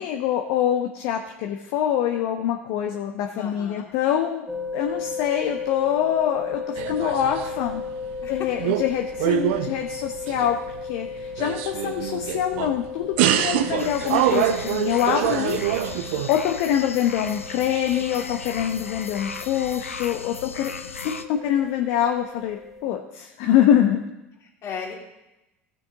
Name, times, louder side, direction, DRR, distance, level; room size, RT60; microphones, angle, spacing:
voice 1, 0.0-4.5 4.7-7.8 8.3-10.6 10.9-24.0, left 10 dB, 55° left, 3 dB, 0.9 m, -25 dB
voice 2, 3.4-3.9 8.2-8.5 24.4-24.9, left 6 dB, 40° left, -1 dB, 2.9 m, -36 dB
sound 1, 4.5-22.9, left 5 dB, ahead, 1.1 m, -36 dB
sound 2, 6.8-7.8 8.1-8.9 9.2-10.8 11.2-12.8 13.2-16.3, right 11 dB, 60° right, 0.6 m, -25 dB
sound 3, 13.8-21.2, left 5 dB, 85° left, 0.5 m, -37 dB
16.5 x 6.3 x 3.9 m, 0.94 s
figure-of-eight pair, 75°, 7 cm